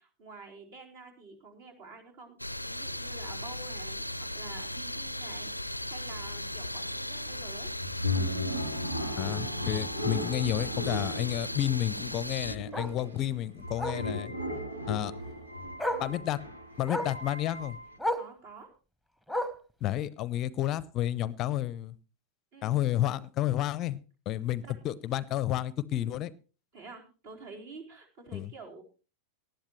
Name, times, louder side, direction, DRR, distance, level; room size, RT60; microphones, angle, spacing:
voice 1, 0.0-4.0 4.3-7.7 13.1-13.4 14.5-14.8 18.1-18.7 22.5-22.8 24.6-24.7 26.7-28.8, right 3 dB, 50° right, 2 dB, 4.2 m, -49 dB
sound 1, 2.4-12.6, left 1 dB, 90° left, 0.5 m, -37 dB
sound 2, 5.2-18.0, left 1 dB, 80° right, 2.0 m, -37 dB
Bark, 6.3-6.4 6.8-7.0 7.3-7.4 7.7-7.8 9.2-9.3 11.8-11.9 12.7-13.0 13.8-14.1 15.3-15.4 15.8-16.1 16.9-17.2 18.0-18.3 19.3-19.7 20.7-20.8, equal, 5° right, 1.3 m, -33 dB
voice 2, 9.2-14.3 14.9-15.1 16.0-16.4 16.8-17.8 19.8-21.9 22.6-24.0 24.3-26.3 28.3-28.5, left 13 dB, 35° left, 20 dB, 0.6 m, -31 dB
19.0 x 11.5 x 3.2 m, 0.35 s
figure-of-eight pair, 90°, 0 cm